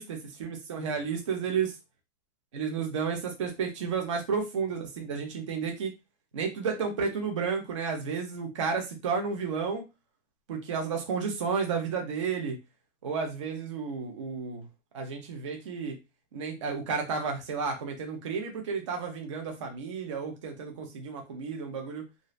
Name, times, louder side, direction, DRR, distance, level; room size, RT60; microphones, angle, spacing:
voice 1, 0.0-1.7 2.5-5.9 6.3-9.8 10.5-12.6 13.0-14.7 14.9-16.0 16.3-22.0, right 5 dB, 25° right, 2 dB, 0.4 m, -32 dB
2.5 x 2.4 x 3.0 m, 0.24 s
supercardioid pair, 175°, 38 cm